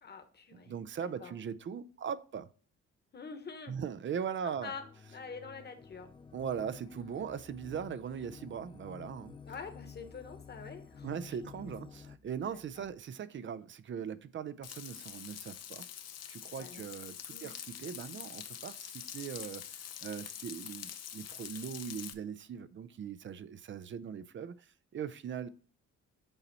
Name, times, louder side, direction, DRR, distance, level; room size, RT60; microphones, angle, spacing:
voice 1, 0.0-1.3 3.1-3.8 4.4-4.8 5.1-6.1 9.5-11.2 11.5-11.6 12.5-12.9 16.5-16.9 17.3-17.5, left 5 dB, 35° left, 1.2 m, -46 dB
voice 2, 0.7-2.5 3.7-4.7 6.3-9.3 11.0-15.8 16.3-25.5, right 7 dB, 40° right, 0.5 m, -40 dB
sound 1, 4.6-12.2, left 6 dB, 15° left, 0.3 m, -52 dB
sound 2, 5.8-12.9, right 1 dB, 65° right, 2.7 m, -67 dB
Frying (food), 14.6-22.1, left 10 dB, 55° left, 0.6 m, -45 dB
7.0 x 4.1 x 4.1 m
cardioid pair, 90°, 30 cm